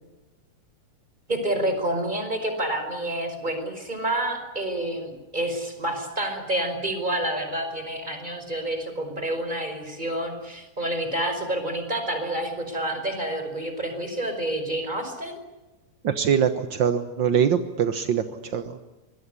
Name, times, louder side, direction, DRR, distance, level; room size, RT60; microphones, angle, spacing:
voice 1, 1.3-15.4, right 1 dB, 15° right, 7 dB, 5.3 m, -28 dB
voice 2, 16.0-18.8, right 8 dB, 60° right, 9 dB, 1.2 m, -23 dB
26.0 x 21.5 x 9.8 m, 1.1 s
omnidirectional pair, 3.7 m